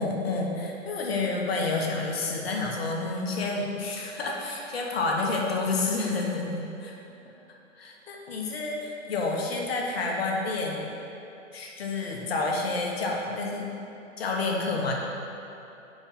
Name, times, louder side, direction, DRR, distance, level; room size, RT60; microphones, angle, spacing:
voice 1, 0.0-7.0 7.8-10.9 11.5-13.7 14.2-14.9, left 3 dB, 50° left, 0 dB, 1.2 m, -29 dB
5.4 x 4.9 x 5.5 m, 2.9 s
hypercardioid pair, 145°, 39 cm